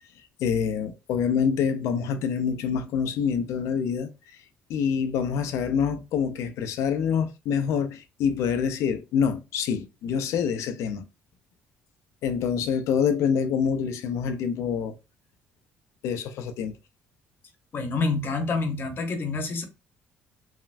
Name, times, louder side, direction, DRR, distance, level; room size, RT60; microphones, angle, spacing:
voice 1, 0.4-4.1 4.7-11.0 12.2-15.0 16.0-16.7, left 7 dB, 75° left, 0.4 m, -26 dB
voice 2, 17.7-19.6, left 3 dB, 45° left, 0.9 m, -27 dB
3.2 x 2.1 x 2.5 m
supercardioid pair, 80°, 5 cm